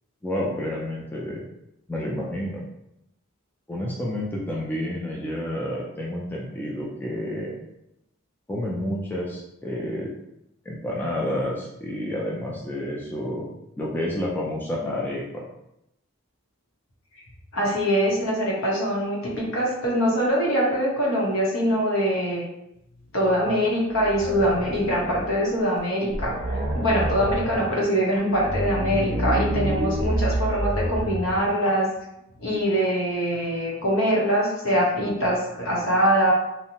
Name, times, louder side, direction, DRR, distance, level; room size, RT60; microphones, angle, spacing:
voice 1, 0.2-1.4 1.9-2.6 3.7-7.6 8.5-10.1 10.7-13.5 13.8-15.4, left 1 dB, 10° left, -4 dB, 0.3 m, -29 dB
voice 2, 17.5-22.4 23.1-31.9 32.4-36.3, equal, 70° left, -4 dB, 0.9 m, -23 dB
sound 1, 23.9-25.4 25.8-25.9 26.1-27.7 28.3-31.4, right 1 dB, 40° right, 0.5 m, -28 dB
2.6 x 2.1 x 2.8 m, 0.82 s
head